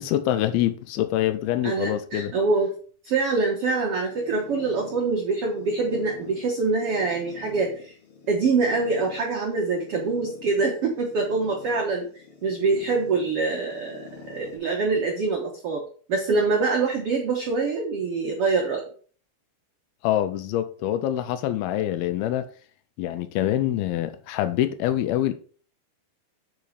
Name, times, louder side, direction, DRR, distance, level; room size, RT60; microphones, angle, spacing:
voice 1, 0.0-2.3 20.0-22.5 23.0-25.3, left 12 dB, 85° left, 2.5 m, -25 dB
voice 2, 1.6-2.7 3.0-7.9 8.3-12.1 12.4-15.8 16.1-18.8, right 4 dB, 80° right, 1.3 m, -25 dB
sound 1, 4.1-14.6, left 6 dB, 65° left, 4.4 m, -46 dB
9.4 x 4.2 x 5.1 m
omnidirectional pair, 4.5 m